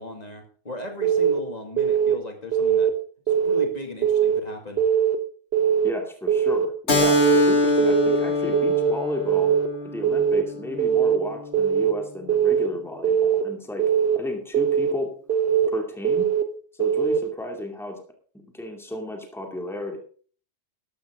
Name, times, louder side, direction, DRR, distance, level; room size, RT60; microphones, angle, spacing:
voice 1, 0.0-2.9 3.4-4.9, left 1 dB, 30° left, 4 dB, 2.4 m, -37 dB
Keyboard (musical) / Alarm, 1.0-1.4 1.8-2.1 2.5-2.9 3.3-3.7 4.0-4.4 4.8-5.2 5.5-5.9 6.3-6.7 7.0-7.4 7.8-8.2 8.5-8.9 9.3-9.7 10.0-10.4 10.8-11.2 11.5-11.9 12.3-12.7 13.0-13.4 13.8-14.2 14.5-14.9 15.3-15.7 16.0-16.4 16.8-17.2, right 8 dB, 50° right, 1.3 m, -21 dB
voice 2, 5.8-9.5 9.8-13.8 14.2-15.1 15.7-16.3 16.7-18.0 18.5-20.0, left 1 dB, ahead, 3 dB, 2.4 m, -33 dB
Keyboard (musical), 6.9-12.0, left 2 dB, 55° left, 2.3 m, -24 dB
13.5 x 12.0 x 3.8 m, 0.43 s
omnidirectional pair, 1.3 m